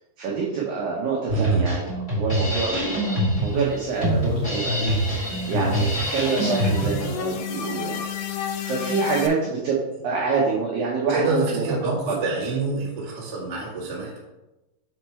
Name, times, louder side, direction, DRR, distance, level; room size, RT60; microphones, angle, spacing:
voice 1, 0.2-12.2, right 5 dB, 85° right, -4 dB, 2.0 m, -27 dB
Drum kit, 1.3-7.2, right 1 dB, 30° left, 1.4 m, -24 dB
voice 2, 1.3-1.7 11.1-14.2, right 3 dB, 65° right, -5 dB, 1.0 m, -27 dB
sound 1, 2.9-9.3, left 9 dB, 80° left, 3.0 m, -33 dB
6.5 x 4.7 x 4.4 m, 1.0 s
omnidirectional pair, 5.5 m